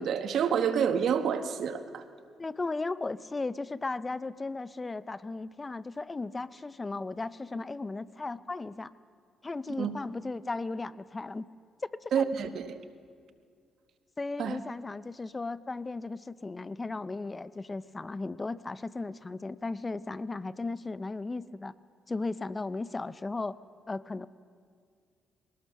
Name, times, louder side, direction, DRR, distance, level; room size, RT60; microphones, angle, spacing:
voice 1, 0.0-2.0 9.8-9.9 12.1-12.8 14.4-14.6, right 7 dB, 70° right, 9 dB, 1.2 m, -28 dB
voice 2, 2.4-8.9 9.4-11.5 11.8-12.3 14.2-21.7 22.1-23.6 23.9-24.3, left 3 dB, 25° left, 17 dB, 0.5 m, -36 dB
21.0 x 18.0 x 6.8 m, 2.1 s
cardioid pair, 90°, 0 cm